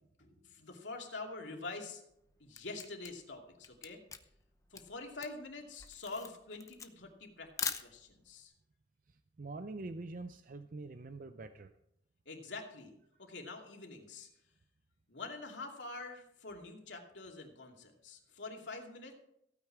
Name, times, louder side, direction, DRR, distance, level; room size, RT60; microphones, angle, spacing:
voice 1, 0.2-2.0 2.4-4.0 4.7-8.5 12.3-12.9 13.2-14.3 15.1-19.2, left 3 dB, 90° left, 1 dB, 2.6 m, -46 dB
Camera, 2.1-8.3, left 5 dB, 20° left, 0.8 m, -43 dB
voice 2, 9.4-11.7, right 3 dB, 50° right, 9 dB, 0.5 m, -44 dB
15.5 x 9.2 x 4.8 m, 0.78 s
head